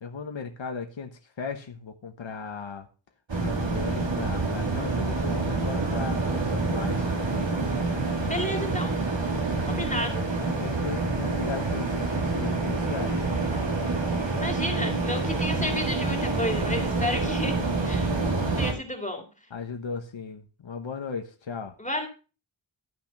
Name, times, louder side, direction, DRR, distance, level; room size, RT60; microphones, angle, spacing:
voice 1, 0.0-2.9 3.3-7.1 10.6-13.2 19.5-21.8, left 5 dB, 85° left, 5 dB, 1.2 m, -36 dB
sound 1, 3.3-18.7, right 3 dB, 75° right, 3.1 m, -27 dB
voice 2, 8.2-9.0 9.6-10.2 14.4-18.1 18.6-19.3 21.8-22.1, left 1 dB, 15° left, 3 dB, 2.5 m, -31 dB
12.5 x 5.9 x 5.4 m, 0.35 s
wide cardioid pair, 80°, 45 cm